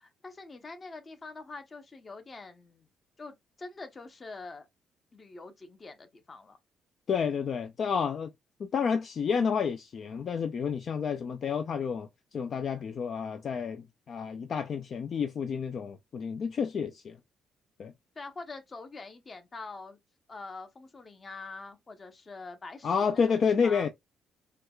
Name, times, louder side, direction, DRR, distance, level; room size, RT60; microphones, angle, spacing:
voice 1, 0.0-2.9 3.2-4.7 5.1-6.6 18.2-20.0 20.3-23.9, left 3 dB, 30° left, 0.8 m, -45 dB
voice 2, 7.1-8.3 8.6-17.2 17.8-17.9 22.8-23.9, left 6 dB, 55° left, 0.4 m, -30 dB
4.5 x 2.3 x 2.3 m
cardioid pair, 90°, 0 cm